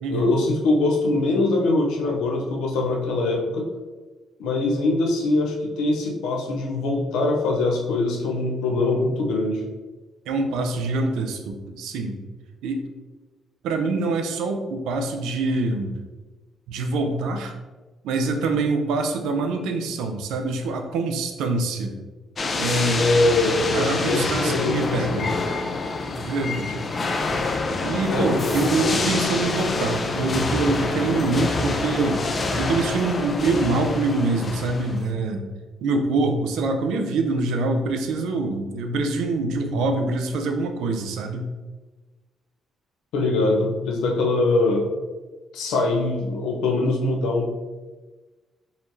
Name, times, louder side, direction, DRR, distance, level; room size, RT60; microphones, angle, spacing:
voice 1, 0.1-3.7 4.4-9.6 23.0-25.3 28.1-29.0 43.1-44.9 45.5-47.5, left 2 dB, 90° left, 1 dB, 0.6 m, -23 dB
voice 2, 10.3-12.2 12.6-12.9 13.6-15.9 16.7-17.5 18.0-22.0 22.6-23.1 23.7-25.3 26.2-26.8 27.8-32.2 32.6-35.5 35.8-41.5, right 3 dB, 90° right, 5 dB, 0.4 m, -25 dB
sound 1, 22.4-35.0, left 3 dB, 40° left, 0.4 m, -26 dB
4.0 x 3.0 x 2.6 m, 1.3 s
cardioid pair, 90°, 0 cm